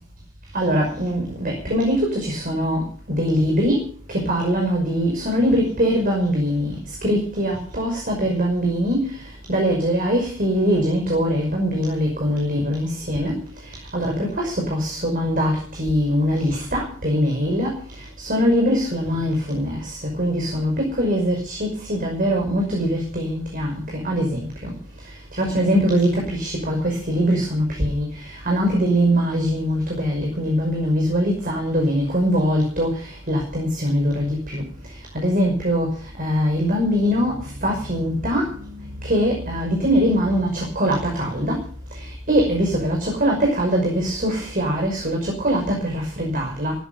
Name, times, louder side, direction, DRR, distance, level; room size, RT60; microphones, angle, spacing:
voice 1, 0.5-3.8 4.1-6.7 7.0-9.0 9.5-13.3 13.9-17.7 18.2-19.8 20.2-23.7 24.0-24.4 25.4-28.1 28.5-32.9 33.3-34.6 35.1-35.9 36.2-37.3 37.6-38.5 39.0-41.6 42.3-46.7, equal, 45° right, 0 dB, 5.7 m, -22 dB
16.0 x 14.5 x 5.4 m, 0.43 s
head